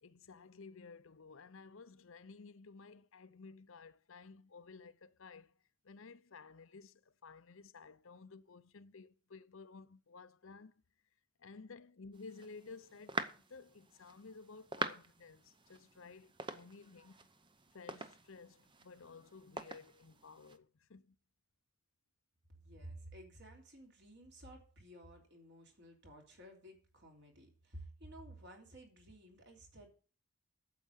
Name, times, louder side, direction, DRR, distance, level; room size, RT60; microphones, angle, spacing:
voice 1, 0.0-5.5 5.8-10.8 11.4-17.3 17.7-21.2, left 4 dB, 65° left, 0.7 m, -55 dB
sound 1, 12.1-20.6, right 3 dB, 20° right, 0.7 m, -46 dB
voice 2, 22.5-29.9, right 1 dB, 50° right, 3.3 m, -54 dB
9.1 x 7.6 x 8.4 m
head